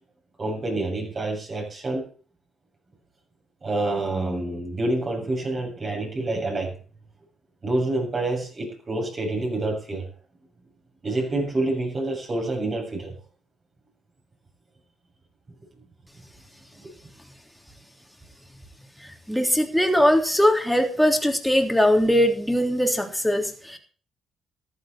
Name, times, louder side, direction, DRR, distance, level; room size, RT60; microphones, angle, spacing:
voice 1, 0.4-2.1 3.6-6.7 7.6-10.1 11.0-13.1, right 2 dB, 35° right, 7.2 m, -27 dB
voice 2, 19.3-23.8, equal, ahead, 3.3 m, -21 dB
14.5 x 12.0 x 4.4 m
cardioid pair, 90°, 0 cm